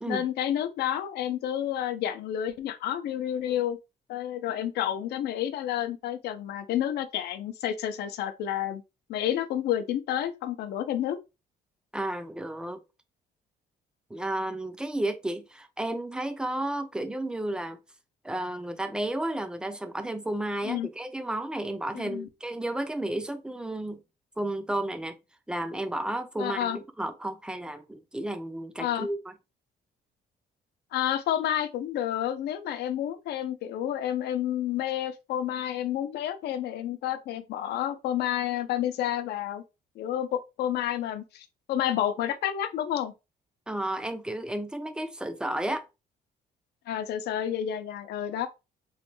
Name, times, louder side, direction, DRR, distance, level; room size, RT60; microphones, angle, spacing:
voice 1, 0.1-3.8 4.1-8.8 9.1-11.2 20.6-20.9 21.9-22.3 26.4-26.8 28.8-29.1 30.9-39.6 40.0-43.1 46.9-48.5, left 11 dB, 75° left, 0.5 m, -30 dB
voice 2, 11.9-12.8 14.1-17.8 18.2-24.0 24.4-25.2 25.5-29.2 43.7-45.8, right 1 dB, 5° right, 0.3 m, -32 dB
3.1 x 2.2 x 3.0 m
cardioid pair, 135°, 17 cm